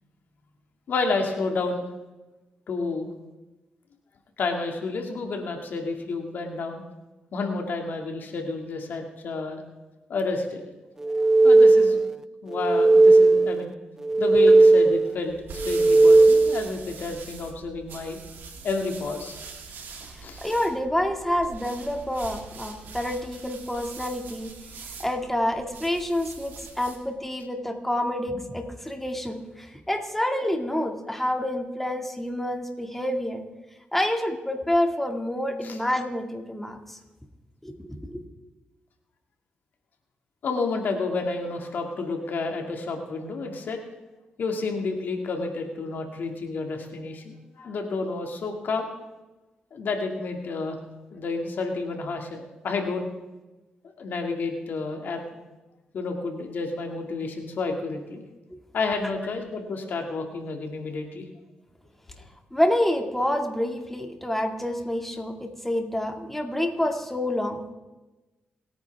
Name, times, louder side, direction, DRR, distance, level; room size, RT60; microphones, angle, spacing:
voice 1, 0.9-1.8 2.7-3.1 4.4-6.8 7.3-9.6 10.1-10.6 11.1-12.0 12.4-13.7 14.2-18.2 18.6-19.4 20.2-20.4 35.6-35.8 40.4-43.8 44.4-48.9 49.7-50.8 51.1-53.1 54.0-55.2 55.9-58.2 58.7-61.3, left 3 dB, 70° left, 3 dB, 2.2 m, -30 dB
sound 1, 11.0-12.2 12.5-13.7 14.0-15.2 15.6-16.7, right 2 dB, 15° right, 0.4 m, -16 dB
sound 2, 15.2-27.1, right 5 dB, 80° right, 2.6 m, -43 dB
voice 2, 20.1-24.5 25.0-33.4 33.9-37.0 37.6-38.2 58.5-58.6 62.5-67.7, left 1 dB, 5° left, 3 dB, 2.1 m, -28 dB
27.5 x 9.7 x 3.5 m, 1.1 s
cardioid pair, 65°, 3 cm